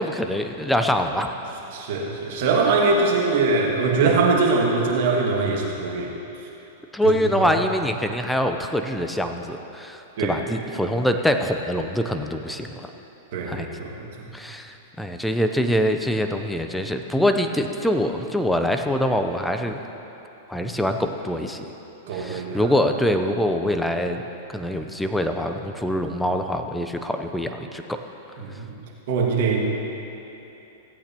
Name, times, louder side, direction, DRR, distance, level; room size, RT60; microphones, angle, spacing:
voice 1, 0.0-1.3 4.0-4.1 6.9-12.9 13.5-13.7 14.3-19.8 20.5-21.7 22.1-24.2 24.5-28.0, equal, 5° left, 5 dB, 0.7 m, -24 dB
voice 2, 1.7-6.1 7.0-7.5 10.2-10.5 13.3-14.2 22.1-22.7 28.4-28.7 29.1-29.6, right 4 dB, 60° right, -1 dB, 1.9 m, -22 dB
16.5 x 8.6 x 2.9 m, 3.0 s
hypercardioid pair, 110°, 0 cm